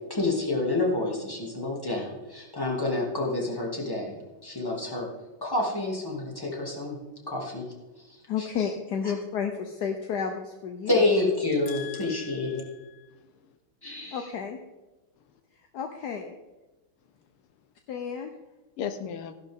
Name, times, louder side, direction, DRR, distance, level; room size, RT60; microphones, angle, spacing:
voice 1, 0.1-5.1 5.4-7.0 7.3-8.1 8.4-8.5 9.0-9.1 10.9-12.6 13.8-14.3, left 2 dB, 10° left, -2 dB, 2.5 m, -28 dB
voice 2, 8.3-11.1 14.1-14.6 15.7-16.3 17.9-18.3, left 7 dB, 60° left, 5 dB, 1.2 m, -31 dB
voice 3, 11.7-13.1 18.8-19.3, left 8 dB, 85° left, 9 dB, 1.8 m, -38 dB
14.5 x 11.5 x 3.7 m, 1.1 s
omnidirectional pair, 2.4 m